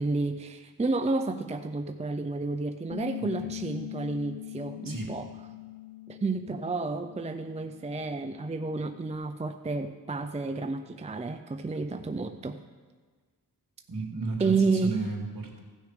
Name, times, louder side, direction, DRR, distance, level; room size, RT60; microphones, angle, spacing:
voice 1, 0.0-5.3 6.1-12.6 14.4-15.0, right 3 dB, 20° right, 7 dB, 0.4 m, -31 dB
Bass guitar, 2.9-9.2, left 16 dB, 70° left, 0.6 m, -42 dB
voice 2, 4.8-5.2 12.0-12.1 13.9-15.6, right 3 dB, 55° right, -2 dB, 2.6 m, -34 dB
15.5 x 6.4 x 5.0 m, 1.5 s
wide cardioid pair, 85°, 39 cm